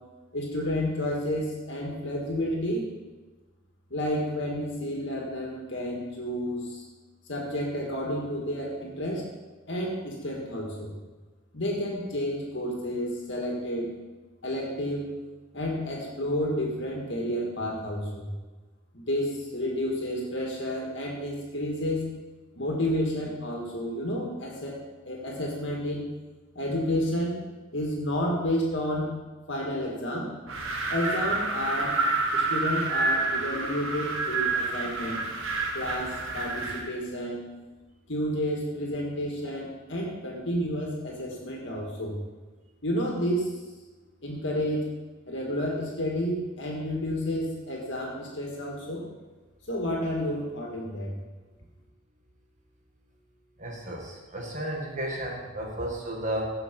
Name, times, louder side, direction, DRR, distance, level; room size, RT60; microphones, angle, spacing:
voice 1, 0.3-2.8 3.9-6.8 7.3-9.2 9.7-10.9 11.5-13.9 14.4-15.1 15.5-18.3 18.9-22.1 22.6-24.8 25.0-26.1 26.6-29.1 29.5-30.3 30.9-31.9 32.3-35.2 35.7-37.4 38.1-42.2 42.8-43.6 44.2-44.9 45.3-49.0 49.7-51.1, equal, 60° left, -1 dB, 2.0 m, -30 dB
Wind, 30.5-36.9, right 3 dB, 80° right, 1.5 m, -28 dB
voice 2, 53.6-56.5, right 1 dB, 35° right, -1 dB, 1.9 m, -33 dB
15.5 x 5.7 x 5.4 m, 1.2 s
head